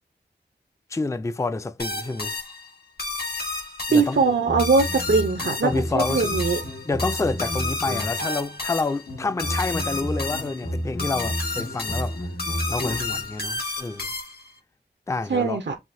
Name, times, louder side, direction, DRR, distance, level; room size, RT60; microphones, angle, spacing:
voice 1, 0.9-2.4 3.9-4.2 5.6-6.3 6.8-12.2 12.7-14.1 15.1-15.6, left 3 dB, 15° left, 0.3 m, -28 dB
sound 1, 1.8-14.6, left 3 dB, 60° left, 1.2 m, -31 dB
voice 2, 3.9-6.6 15.3-15.7, right 4 dB, 80° right, 0.6 m, -21 dB
sound 2, 4.1-8.4 9.1-13.3, equal, 85° left, 1.2 m, -32 dB
5.7 x 2.5 x 2.6 m
wide cardioid pair, 55°, 18 cm